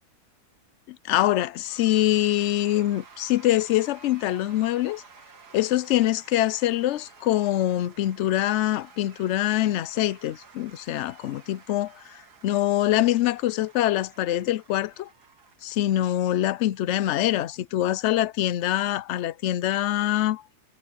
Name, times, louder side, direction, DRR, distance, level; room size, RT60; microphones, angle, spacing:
voice 1, 0.9-5.0 5.5-15.1 15.6-20.4, left 13 dB, 70° left, 0.7 m, -24 dB
Cheering / Applause / Crowd, 1.5-17.1, right 5 dB, 85° right, 2.6 m, -52 dB
omnidirectional pair, 1.7 m